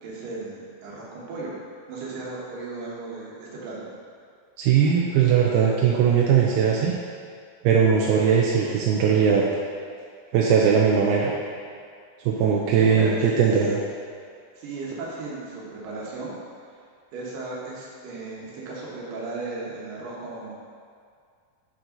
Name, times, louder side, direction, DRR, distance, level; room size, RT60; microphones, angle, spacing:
voice 1, 0.0-1.5 1.9-3.9 12.8-13.5 14.5-16.3 17.1-20.5, right 3 dB, 70° right, -5 dB, 2.8 m, -35 dB
voice 2, 4.6-6.9 7.6-9.4 10.3-11.3 12.3-13.8, right 7 dB, 85° right, -3 dB, 2.6 m, -19 dB
8.9 x 4.6 x 3.9 m, 2.2 s
omnidirectional pair, 4.4 m